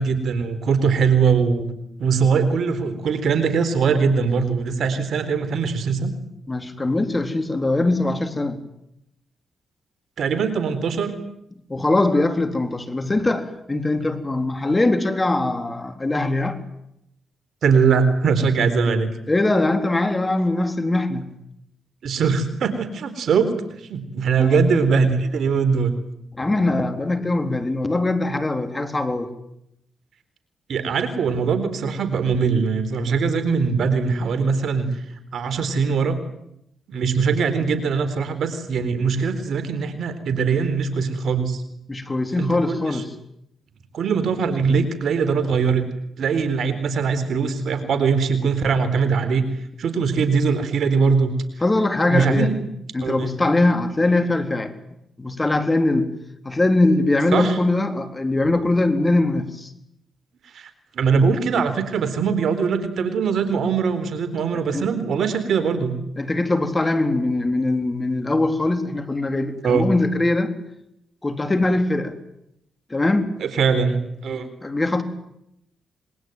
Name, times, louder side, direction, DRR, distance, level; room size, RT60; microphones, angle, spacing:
voice 1, 0.0-1.7 2.0-6.1 10.2-11.1 17.6-19.1 22.0-25.9 30.7-35.0 35.3-36.2 36.9-41.6 42.4-43.0 43.9-45.8 46.2-49.4 49.8-51.3 52.1-52.6 53.0-53.3 57.3-57.6 60.5-60.7 60.9-66.0 69.6-69.9 73.4-74.0 74.2-74.5, right 5 dB, 70° right, 4.0 m, -21 dB
voice 2, 6.5-8.6 11.7-16.6 19.3-21.3 24.4-24.6 26.4-29.3 41.9-43.1 51.6-52.5 52.9-54.7 55.2-56.1 56.4-59.7 64.7-64.9 66.2-70.5 71.2-72.2 72.9-73.3 74.6-75.0, left 2 dB, 25° left, 3.8 m, -21 dB
27.0 x 23.0 x 9.4 m
cardioid pair, 65°, 0 cm